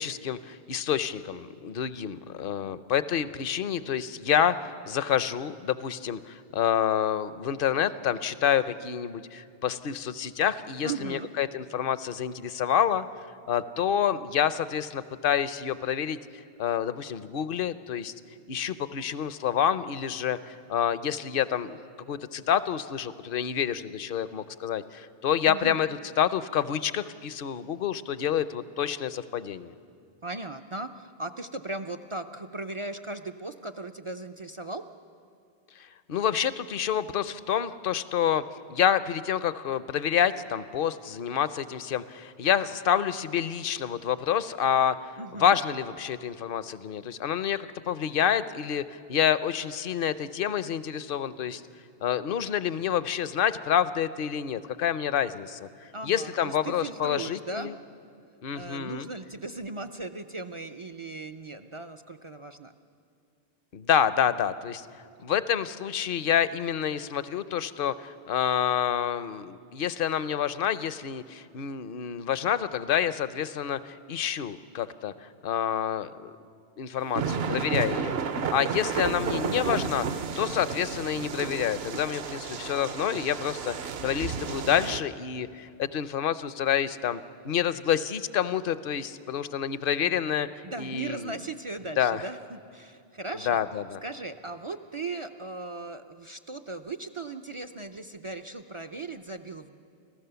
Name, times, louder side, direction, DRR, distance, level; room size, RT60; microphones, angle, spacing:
voice 1, 0.0-13.1 13.5-16.2 16.6-18.1 18.5-21.8 22.1-25.9 26.2-29.7 36.1-38.4 38.7-45.0 45.4-51.6 52.0-55.7 56.0-57.7 58.4-59.1 63.7-64.9 65.2-75.1 75.4-76.3 76.8-78.2 78.5-80.1 80.4-90.5 90.8-91.4 92.0-92.2 93.5-94.0, left 9 dB, 55° left, 14 dB, 0.8 m, -28 dB
voice 2, 10.8-11.3 25.5-25.8 30.2-34.9 45.2-45.6 55.9-57.7 58.5-62.7 78.7-79.2 90.0-90.3 90.6-93.6 94.0-99.8, right 3 dB, 40° right, 8 dB, 0.4 m, -38 dB
sound 1, 77.0-85.0, right 6 dB, 65° right, 1.0 m, -32 dB
29.0 x 14.5 x 6.9 m, 2.3 s
omnidirectional pair, 1.2 m